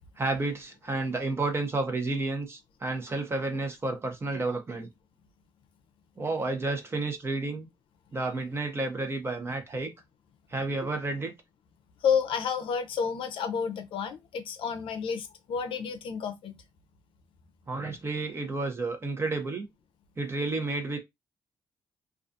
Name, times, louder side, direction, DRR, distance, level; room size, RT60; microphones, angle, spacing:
voice 1, 0.2-4.9 6.2-7.7 8.1-9.9 10.5-11.3 17.7-19.7 20.2-21.0, right 3 dB, 30° right, 0.7 m, -31 dB
voice 2, 12.0-16.6, left 6 dB, 75° left, 0.5 m, -30 dB
2.3 x 2.3 x 2.6 m
cardioid pair, 100°, 9 cm